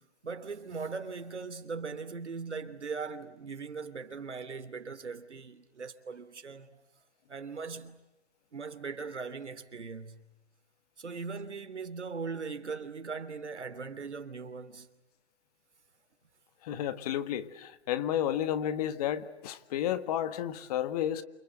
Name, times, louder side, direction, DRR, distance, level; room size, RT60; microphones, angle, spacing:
voice 1, 0.0-6.8 7.3-8.0 8.5-10.3 11.0-14.9, right 5 dB, 85° right, 3.0 m, -40 dB
voice 2, 16.6-21.2, left 10 dB, 35° left, 1.6 m, -32 dB
28.5 x 25.5 x 8.0 m
hypercardioid pair, 145°, 34 cm